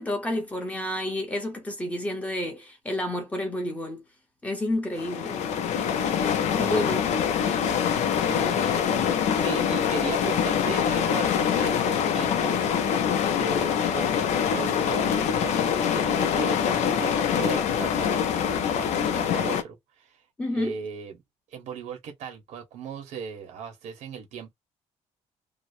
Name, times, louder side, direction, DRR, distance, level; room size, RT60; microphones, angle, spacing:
voice 1, 0.0-4.0 4.4-5.4 6.6-7.1 20.4-20.7, left 1 dB, 10° left, 0.8 m, -30 dB
sound 1, 4.9-19.6, left 8 dB, 70° left, 0.5 m, -24 dB
voice 2, 6.5-6.9 7.6-20.1 20.5-21.2 21.5-24.5, right 6 dB, 85° right, 1.2 m, -38 dB
2.8 x 2.0 x 2.6 m
cardioid pair, 165°, 12 cm